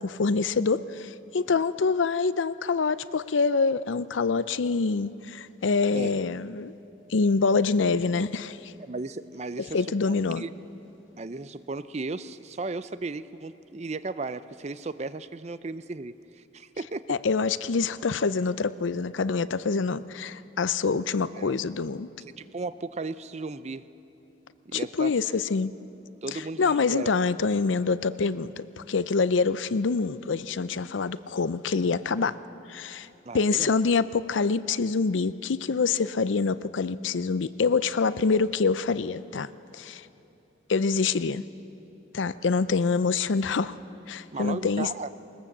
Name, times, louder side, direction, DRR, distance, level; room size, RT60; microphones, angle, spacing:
voice 1, 0.0-6.7 7.1-8.7 9.7-10.4 17.1-22.1 24.7-25.7 26.6-32.4 32.7-33.1 33.3-39.5 39.7-40.0 40.7-41.4 42.1-43.8 44.1-44.9, left 4 dB, 85° left, 15 dB, 0.5 m, -26 dB
voice 2, 8.8-10.5 11.2-17.2 21.2-21.5 22.2-23.8 24.7-25.1 26.2-27.2 33.3-33.8 44.3-45.1, right 3 dB, 35° right, 14 dB, 0.5 m, -35 dB
20.5 x 20.0 x 7.3 m, 3.0 s
head